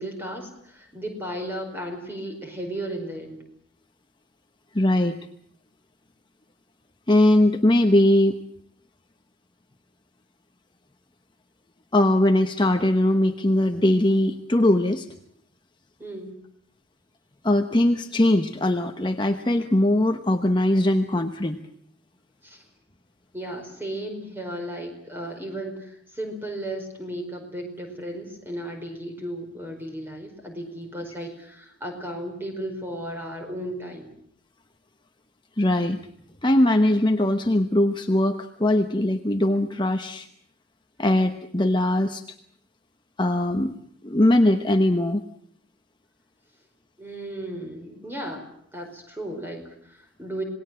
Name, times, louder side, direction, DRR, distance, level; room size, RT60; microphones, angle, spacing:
voice 1, 0.0-3.4 16.0-16.4 22.4-22.6 23.3-34.1 47.0-50.4, right 1 dB, 10° right, 4 dB, 4.7 m, -35 dB
voice 2, 4.7-5.2 7.1-8.4 11.9-15.1 17.4-21.6 35.6-36.0 36.4-40.3 41.0-42.2 43.2-43.8 44.0-45.2, left 1 dB, 20° left, 6 dB, 0.9 m, -20 dB
27.0 x 19.5 x 7.6 m, 0.67 s
head